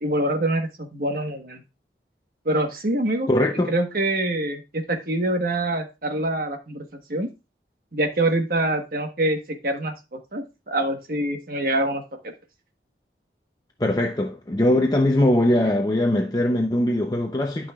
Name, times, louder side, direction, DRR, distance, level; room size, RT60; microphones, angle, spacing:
voice 1, 0.0-1.6 2.4-3.3 3.7-7.3 7.9-12.0, right 1 dB, 55° right, 1.2 m, -25 dB
voice 2, 3.3-3.7 13.8-17.7, left 1 dB, 20° left, 0.6 m, -21 dB
11.5 x 5.6 x 2.3 m
head